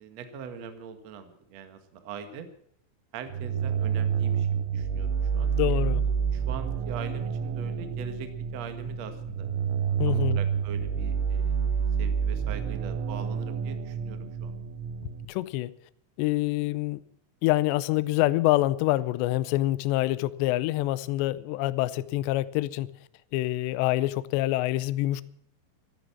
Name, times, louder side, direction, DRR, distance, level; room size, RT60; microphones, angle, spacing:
voice 1, 0.0-2.5 3.1-5.8 6.3-9.5 10.1-14.5, right 6 dB, 55° right, 9 dB, 2.0 m, -42 dB
sound 1, 3.3-15.3, right 7 dB, 85° right, 3.7 m, -28 dB
voice 2, 5.6-6.0 10.0-10.4 15.3-15.7 16.2-17.0 17.4-22.9 23.3-25.2, left 17 dB, 80° left, 17 dB, 2.8 m, -26 dB
14.0 x 13.0 x 7.3 m, 0.69 s
omnidirectional pair, 5.3 m